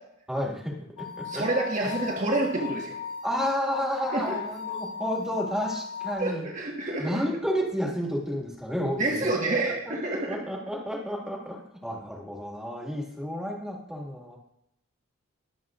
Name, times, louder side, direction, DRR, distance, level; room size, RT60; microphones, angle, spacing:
voice 1, 0.3-1.5 3.2-6.5 7.0-9.3 9.9-10.0 10.3-14.4, equal, 5° right, -1 dB, 1.9 m, -31 dB
sound 1, 1.0-6.1, left 6 dB, 90° left, 2.8 m, -36 dB
voice 2, 1.3-2.9 4.1-4.4 6.2-7.2 9.0-10.4, right 2 dB, 35° right, -1 dB, 1.5 m, -28 dB
22.0 x 7.7 x 2.5 m, 0.79 s
head